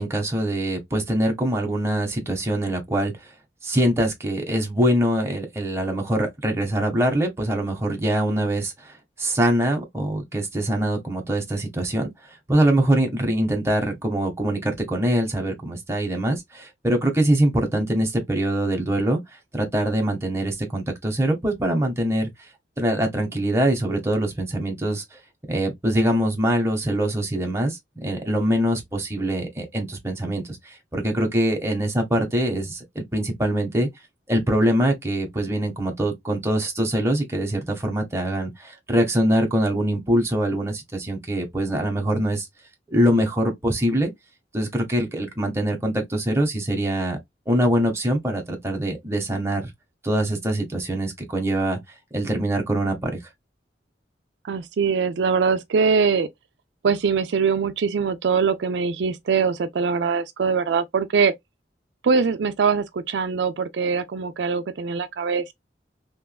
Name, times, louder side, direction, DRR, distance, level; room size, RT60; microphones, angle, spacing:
voice 1, 0.0-3.1 3.6-12.1 12.5-19.2 19.5-22.3 22.8-25.0 25.5-33.9 34.3-42.5 42.9-44.1 44.5-47.2 47.5-49.7 50.0-51.8 52.1-53.1, right 1 dB, 15° right, 1.0 m, -23 dB
voice 2, 54.4-56.3 56.8-61.3 62.0-65.5, right 5 dB, 80° right, 0.4 m, -22 dB
3.4 x 3.0 x 2.3 m
head